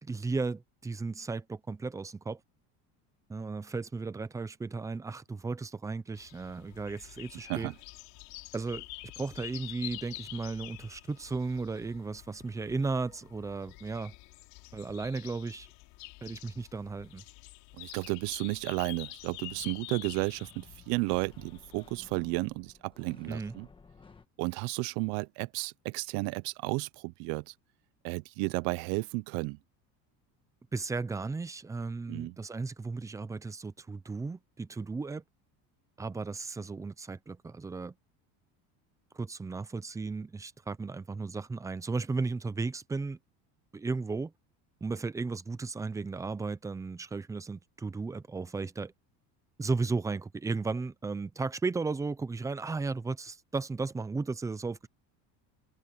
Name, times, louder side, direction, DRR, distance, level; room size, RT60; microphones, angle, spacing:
voice 1, 0.0-2.4 3.3-7.7 8.5-8.9 9.2-14.1 14.7-15.7 16.2-17.2 23.3-23.5 30.7-35.2 36.0-37.9 39.1-43.2 43.7-44.3 44.8-48.9 49.6-54.9, right 4 dB, 10° right, 0.6 m, -35 dB
sound 1, 6.1-22.0, left 23 dB, 70° left, 3.7 m, -48 dB
sound 2, 17.0-17.2 18.3-18.7 19.5-24.3, left 4 dB, 15° left, 1.5 m, -57 dB
voice 2, 17.7-23.7 24.4-27.5 28.0-29.6 32.1-32.3, right 25 dB, 70° right, 0.7 m, -33 dB
cardioid pair, 165°, 37 cm